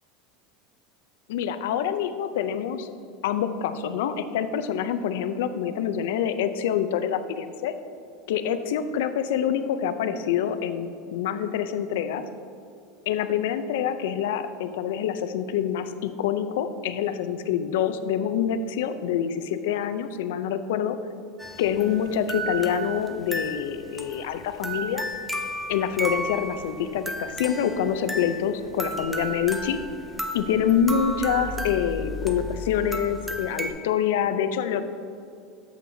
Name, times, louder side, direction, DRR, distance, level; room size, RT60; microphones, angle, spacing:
voice 1, 1.3-2.9 3.2-7.7 8.3-12.2 13.1-21.0 21.6-25.0 25.7-29.8 30.3-34.8, left 8 dB, 80° left, 10 dB, 0.4 m, -26 dB
sound 1, 21.4-33.7, equal, ahead, 0.4 m, -34 dB
8.3 x 7.4 x 2.7 m, 2.4 s
supercardioid pair, 175°, 0 cm